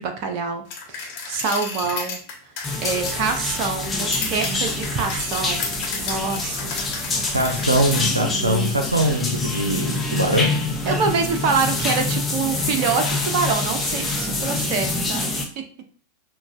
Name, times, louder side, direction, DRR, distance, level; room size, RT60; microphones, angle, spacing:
voice 1, 0.0-2.2 2.8-5.7 5.9-6.7 10.9-15.4, right 5 dB, 40° right, 5 dB, 0.7 m, -25 dB
sound 1, 0.7-8.1, left 4 dB, 45° left, 1.2 m, -33 dB
sound 2, 2.6-15.4, left 2 dB, 10° left, 0.8 m, -26 dB
voice 2, 7.3-10.5, right 1 dB, 80° right, 3 dB, 0.6 m, -22 dB
6.1 x 2.3 x 2.5 m, 0.43 s
figure-of-eight pair, 90°, 0 cm